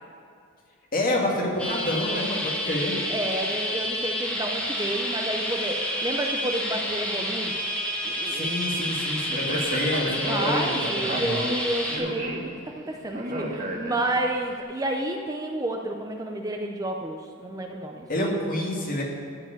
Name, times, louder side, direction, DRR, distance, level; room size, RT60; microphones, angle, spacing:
voice 1, 0.9-3.0 8.3-10.8 11.1-11.4 18.1-19.0, left 1 dB, 40° left, -2 dB, 2.0 m, -28 dB
sound 1, 1.6-12.0, equal, 5° left, 1.3 m, -29 dB
voice 2, 3.1-7.5 8.0-8.6 10.2-12.4 12.7-18.1, right 1 dB, 15° right, 2 dB, 0.5 m, -30 dB
Speech, 9.3-14.4, right 1 dB, 35° right, 1.2 m, -33 dB
14.0 x 4.9 x 8.7 m, 2.4 s
head